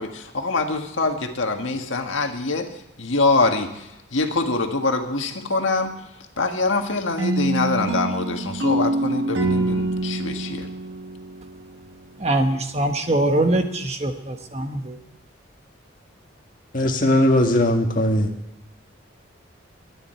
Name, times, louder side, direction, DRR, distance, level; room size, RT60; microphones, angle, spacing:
voice 1, 0.0-2.7 3.0-3.7 4.1-5.9 6.4-10.7, left 3 dB, 75° left, 4 dB, 1.7 m, -24 dB
sound 1, 7.2-12.1, right 1 dB, 70° right, 1.4 m, -26 dB
voice 2, 12.2-15.0, right 1 dB, 30° right, 6 dB, 1.3 m, -23 dB
voice 3, 16.7-18.3, left 1 dB, 40° left, 3 dB, 1.9 m, -19 dB
22.5 x 10.0 x 4.5 m, 0.88 s
head